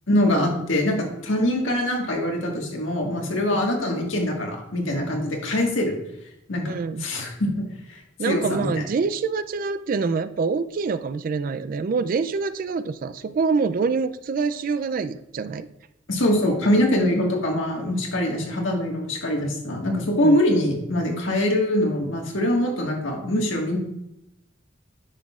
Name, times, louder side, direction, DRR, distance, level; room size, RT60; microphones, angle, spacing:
voice 1, 0.1-6.0 6.5-6.7 7.0-8.0 8.3-8.7 16.1-23.8, left 1 dB, 80° left, 1 dB, 1.6 m, -23 dB
voice 2, 6.6-7.0 8.2-15.7 20.2-20.4, right 4 dB, 45° right, 13 dB, 0.3 m, -26 dB
9.8 x 6.1 x 2.4 m, 0.83 s
head